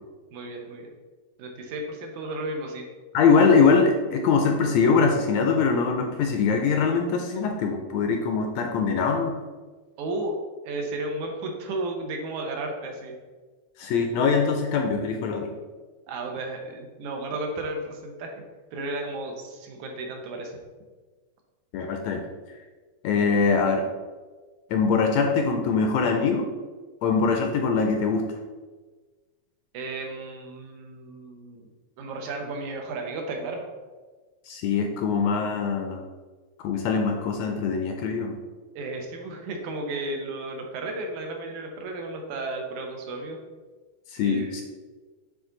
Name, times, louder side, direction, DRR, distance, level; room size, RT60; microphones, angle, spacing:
voice 1, 0.3-0.9 1.4-2.8 10.0-10.4 10.6-13.1 16.1-18.3 18.7-20.6 29.7-31.7 32.0-33.7 38.8-43.4 44.2-44.6, right 2 dB, 80° right, 2 dB, 2.3 m, -33 dB
voice 2, 3.1-9.4 13.8-15.5 21.7-22.2 23.0-23.9 24.7-26.5 27.0-28.2 34.5-36.0 36.6-38.4 44.1-44.6, left 5 dB, 80° left, 3 dB, 1.7 m, -22 dB
8.9 x 3.7 x 3.9 m, 1.3 s
omnidirectional pair, 3.5 m